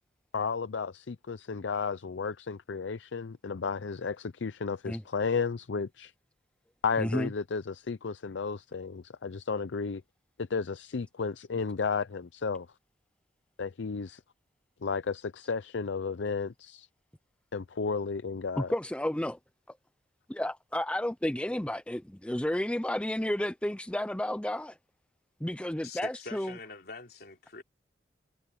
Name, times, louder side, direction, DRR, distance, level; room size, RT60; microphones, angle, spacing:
voice 1, 0.3-6.1 6.8-10.0 10.4-12.7 13.6-14.2 14.8-16.9 17.5-18.7, left 5 dB, 80° left, 0.6 m, -33 dB
voice 2, 7.0-7.3 18.6-19.4 20.3-24.8 25.4-26.6, left 1 dB, 5° left, 0.5 m, -31 dB
voice 3, 25.8-27.6, left 3 dB, 60° left, 3.4 m, -44 dB
head